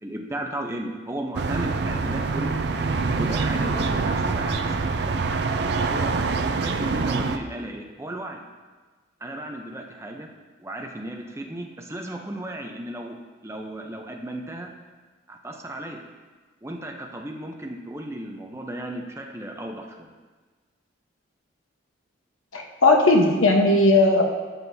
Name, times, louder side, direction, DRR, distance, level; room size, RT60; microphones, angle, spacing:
voice 1, 0.0-2.6 3.1-5.3 5.8-6.2 6.5-8.4 9.2-10.3 10.6-13.1 13.4-14.7 15.3-16.0 16.6-20.1, right 1 dB, 15° right, 1 dB, 0.6 m, -35 dB
sound 1, 1.3-7.4, right 4 dB, 55° right, 0.4 m, -25 dB
voice 2, 22.5-24.2, left 2 dB, 90° left, 2 dB, 1.1 m, -17 dB
12.0 x 7.5 x 2.7 m, 1.4 s
head